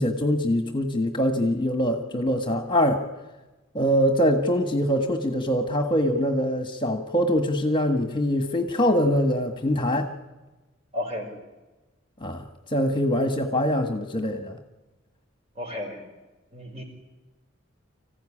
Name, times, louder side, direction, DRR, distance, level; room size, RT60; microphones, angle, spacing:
voice 1, 0.0-3.0 3.7-10.1 12.2-12.4 12.7-14.6, equal, 25° left, 6 dB, 1.5 m, -23 dB
voice 2, 10.9-11.3 15.6-16.0 16.5-16.8, left 1 dB, 30° right, 3 dB, 5.5 m, -32 dB
25.5 x 15.5 x 10.0 m, 1.1 s
head